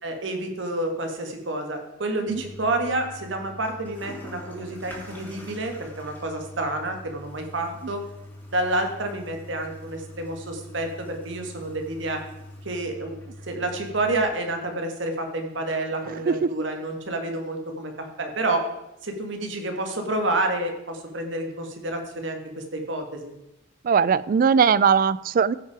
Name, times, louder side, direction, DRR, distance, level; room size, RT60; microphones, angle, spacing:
voice 1, 0.0-8.0 8.5-12.2 12.6-13.2 13.5-18.7 19.0-23.3, right 2 dB, 65° right, 4 dB, 1.6 m, -29 dB
Toilet flush, 2.3-14.2, left 1 dB, 10° left, 2.5 m, -43 dB
voice 2, 23.8-25.5, right 6 dB, 45° right, 19 dB, 0.3 m, -20 dB
15.0 x 5.8 x 4.8 m, 0.91 s
head